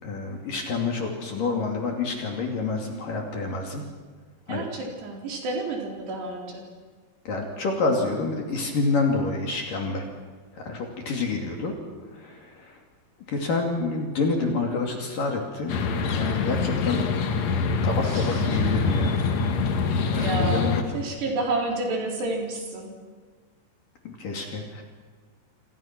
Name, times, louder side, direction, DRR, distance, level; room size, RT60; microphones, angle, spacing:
voice 1, 0.0-3.8 4.5-4.7 7.3-10.1 10.5-11.7 12.1-12.8 13.3-15.8 16.1-17.1 17.8-19.2 20.1-20.8 24.1-24.8, left 3 dB, 50° left, 1 dB, 3.9 m, -28 dB
voice 2, 4.5-6.7 11.3-12.0 18.0-18.6 20.1-23.0, right 2 dB, 60° right, 0 dB, 5.8 m, -31 dB
sound 1, 15.7-20.8, left 4 dB, 75° left, 1.5 m, -25 dB
28.0 x 27.0 x 6.1 m, 1.5 s
omnidirectional pair, 5.6 m